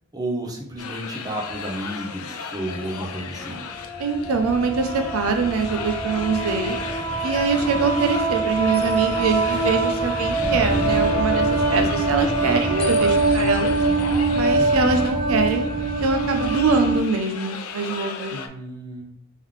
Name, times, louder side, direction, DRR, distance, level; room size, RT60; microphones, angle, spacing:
voice 1, 0.1-3.6 7.5-8.0 14.5-15.2 18.3-19.0, right 1 dB, 20° right, -1 dB, 0.7 m, -32 dB
sound 1, 0.8-18.5, left 6 dB, 80° left, 0.4 m, -35 dB
sound 2, 2.9-3.0 3.5-17.0, right 3 dB, 25° left, 0.6 m, -23 dB
voice 2, 4.0-6.8 7.2-13.7 14.3-15.7 16.0-18.3, right 4 dB, 70° right, 6 dB, 0.5 m, -23 dB
3.6 x 3.1 x 3.6 m, 0.70 s
head